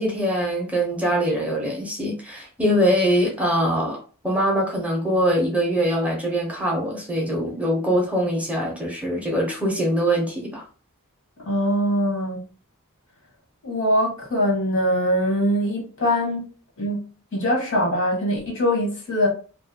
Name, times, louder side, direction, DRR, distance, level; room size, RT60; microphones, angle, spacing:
voice 1, 0.0-4.0 4.2-10.6, equal, 5° right, 0.6 m, -23 dB
voice 2, 11.4-12.4 13.6-16.5 16.8-17.0 17.3-19.3, equal, 60° left, 1.3 m, -22 dB
2.6 x 2.2 x 2.7 m
head